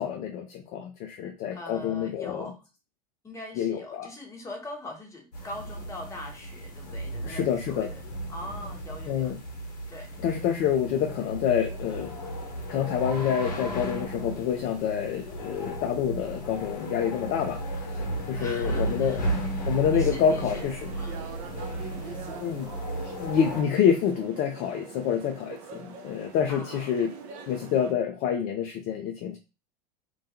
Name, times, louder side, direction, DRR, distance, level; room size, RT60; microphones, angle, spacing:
voice 1, 0.0-2.5 3.6-4.1 7.2-7.9 9.1-9.4 10.2-12.1 12.7-18.0 18.3-19.3 19.6-20.8 22.3-22.7 23.2-27.1 27.5-29.4, left 8 dB, 40° left, 4 dB, 0.4 m, -27 dB
voice 2, 1.5-2.6 3.2-8.0 8.3-9.4 9.9-10.1 18.3-19.6 19.9-21.3 26.5-27.0, left 1 dB, 15° left, 1 dB, 0.8 m, -42 dB
sound 1, 5.3-23.6, right 1 dB, 70° left, 0.8 m, -34 dB
sound 2, 20.0-27.9, right 5 dB, 50° right, 0.5 m, -43 dB
2.2 x 2.2 x 2.7 m, 0.30 s
figure-of-eight pair, 80°, 21 cm